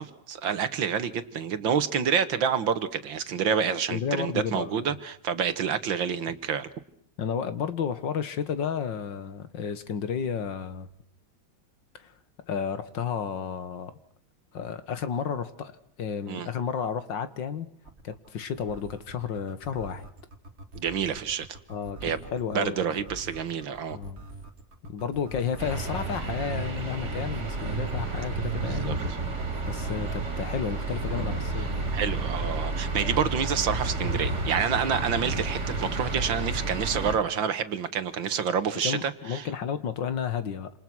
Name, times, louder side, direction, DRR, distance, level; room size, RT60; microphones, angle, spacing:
voice 1, 0.0-6.7 16.3-16.5 20.8-21.6 22.0-22.2 22.6-24.0 28.6-29.0 31.9-39.5, right 7 dB, 70° right, 12 dB, 2.1 m, -28 dB
voice 2, 3.9-4.9 7.2-10.9 11.9-12.1 12.5-13.9 14.5-17.7 18.0-20.1 21.7-22.0 22.3-23.0 23.9-24.2 24.9-29.0 29.6-32.0 38.8-40.7, left 7 dB, 65° left, 12 dB, 2.1 m, -32 dB
sound 1, 17.8-32.2 34.1-34.7, right 2 dB, 30° right, 2.5 m, -44 dB
sound 2, 25.6-37.2, right 2 dB, 50° right, 3.8 m, -31 dB
28.0 x 27.5 x 6.2 m, 0.66 s
omnidirectional pair, 2.2 m